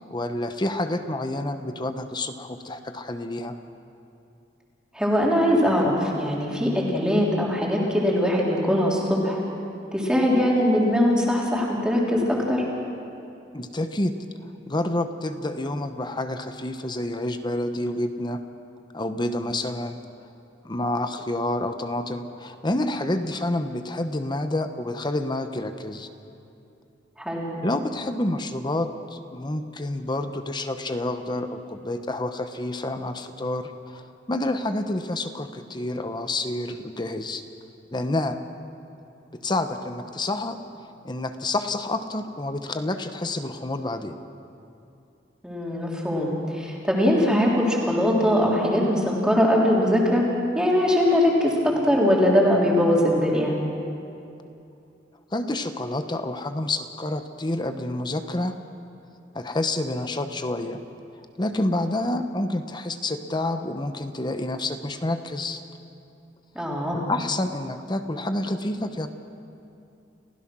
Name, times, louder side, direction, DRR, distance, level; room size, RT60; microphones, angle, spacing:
voice 1, 0.1-3.6 13.5-14.2 14.7-18.4 18.9-20.0 20.6-26.1 27.6-37.4 37.9-38.4 39.3-40.6 41.0-44.2 55.3-58.5 59.3-60.8 61.4-65.6 66.6-69.1, left 1 dB, 25° left, 8 dB, 1.0 m, -28 dB
voice 2, 4.9-9.4 9.9-12.6 27.2-27.5 45.4-50.2 50.6-53.5 66.6-67.0, equal, 5° right, -4 dB, 3.6 m, -21 dB
30.0 x 16.0 x 6.2 m, 2.7 s
head